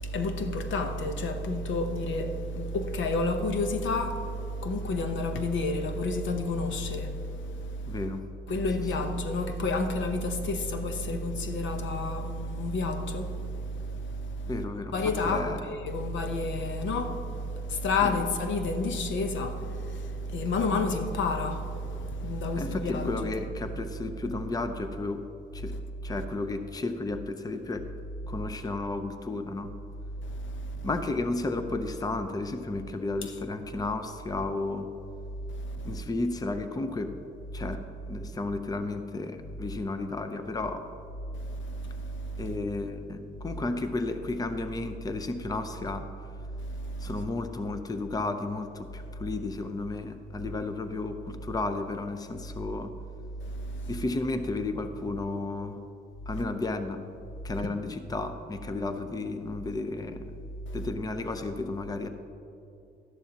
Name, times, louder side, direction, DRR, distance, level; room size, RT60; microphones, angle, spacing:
voice 1, 0.0-8.0 8.5-14.5 14.9-23.2 30.4-30.9 35.6-36.0 41.6-42.5 46.8-47.1 53.5-54.0, left 2 dB, 70° left, 0.9 m, -30 dB
voice 2, 7.9-8.2 14.5-15.0 15.3-15.7 18.0-18.2 22.5-25.2 25.5-25.8 26.0-27.9 28.3-29.7 30.8-34.9 35.8-37.1 37.5-37.8 38.1-40.8 42.4-46.1 47.0-52.9 53.9-55.8 56.3-57.1 57.4-60.3 60.7-62.1, left 2 dB, 20° left, 0.6 m, -33 dB
12.5 x 11.0 x 2.9 m
cardioid pair, 90°, 20 cm